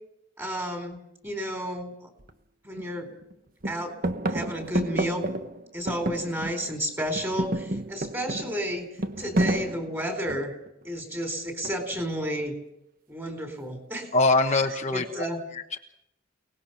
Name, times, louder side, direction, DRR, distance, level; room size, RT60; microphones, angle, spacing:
voice 1, 0.4-1.0 1.2-1.9 2.7-3.1 3.6-3.9 4.3-5.2 5.7-8.9 9.2-10.6 10.8-12.6 13.1-14.1 14.9-15.4, equal, 10° right, 5 dB, 4.1 m, -31 dB
sound 1, 2.2-2.3 2.8-3.3 3.6-6.8 7.1-10.7 11.6-12.1, right 1 dB, 45° right, 1.3 m, -30 dB
voice 2, 14.1-15.3 15.5-15.8, left 3 dB, 35° left, 3 dB, 1.3 m, -23 dB
29.5 x 19.5 x 5.9 m, 0.78 s
head